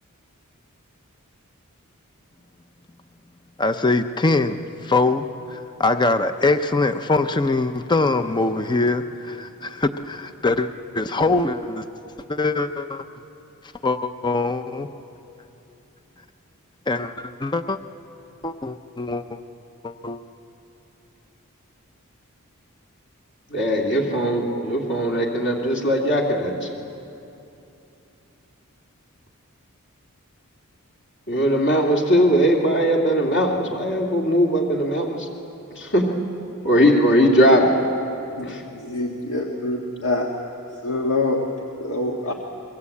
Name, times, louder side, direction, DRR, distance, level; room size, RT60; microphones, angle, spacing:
voice 1, 3.6-5.2 5.5-10.7 10.9-11.8 12.3-13.1 13.8-14.9 16.9-17.8 18.4-19.4 19.8-20.2, left 3 dB, 20° left, 9 dB, 0.7 m, -23 dB
voice 2, 23.5-26.7 31.3-35.3 35.8-36.1 36.6-37.7 38.4-38.6, equal, 50° left, -1 dB, 2.6 m, -19 dB
voice 3, 38.4-40.3 40.8-42.3, left 2 dB, 70° left, 0 dB, 1.8 m, -26 dB
28.5 x 22.5 x 8.5 m, 2.9 s
head